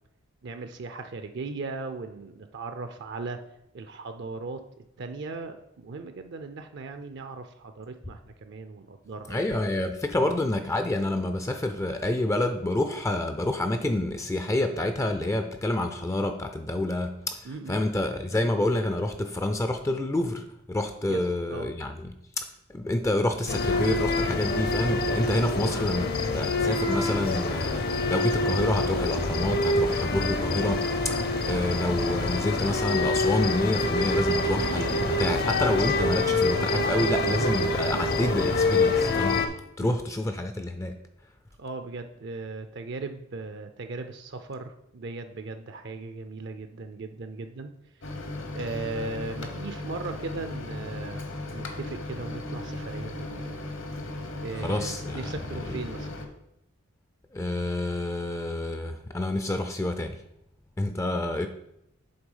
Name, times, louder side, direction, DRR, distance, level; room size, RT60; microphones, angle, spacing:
voice 1, 0.4-3.4 3.7-4.6 5.0-9.5 10.2-10.4 17.4-17.8 21.1-21.2 21.5-21.7 36.7-37.1 39.8-40.0 41.6-47.7 48.0-48.1 48.5-51.2 51.5-53.5 54.4-56.1, right 3 dB, 55° right, 8 dB, 0.5 m, -38 dB
voice 2, 9.3-22.4 22.7-39.5 39.8-41.0 54.5-55.2 55.7-55.8 57.3-60.2 60.8-61.5, left 1 dB, 15° left, 7 dB, 0.3 m, -28 dB
sound 1, 23.5-39.5, left 2 dB, 50° left, 0.6 m, -26 dB
Microwave oven, 48.0-56.3, left 2 dB, 65° left, 1.0 m, -36 dB
7.9 x 3.5 x 5.4 m, 0.80 s
head